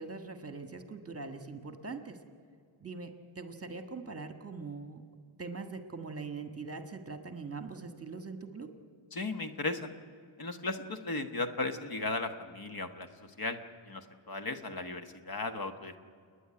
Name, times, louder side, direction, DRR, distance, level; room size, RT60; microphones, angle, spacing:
voice 1, 0.0-2.2 2.8-5.0 5.4-8.7, right 4 dB, 30° right, 7 dB, 1.6 m, -42 dB
voice 2, 9.1-9.9 10.4-13.1 13.4-13.6 13.8-16.0, left 3 dB, 45° left, 8 dB, 1.4 m, -36 dB
29.0 x 10.0 x 10.0 m, 2.2 s
wide cardioid pair, 125°, 49 cm